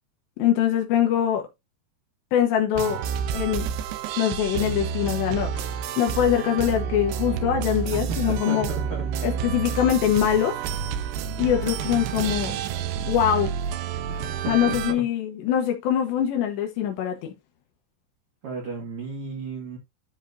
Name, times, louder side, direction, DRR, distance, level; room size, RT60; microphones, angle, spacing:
voice 1, 0.4-1.5 2.3-3.0 3.3-3.7 4.2-5.7 6.0-8.7 9.2-10.6 11.4-12.6 13.1-13.5 14.5-17.3, left 10 dB, 85° left, 3.4 m, -23 dB
sound 1, 2.7-14.9, right 7 dB, 75° right, 2.7 m, -29 dB
voice 2, 7.9-9.1 9.3-9.6 14.0-15.0 18.4-19.8, right 4 dB, 45° right, 2.1 m, -34 dB
12.5 x 4.3 x 2.7 m
omnidirectional pair, 4.9 m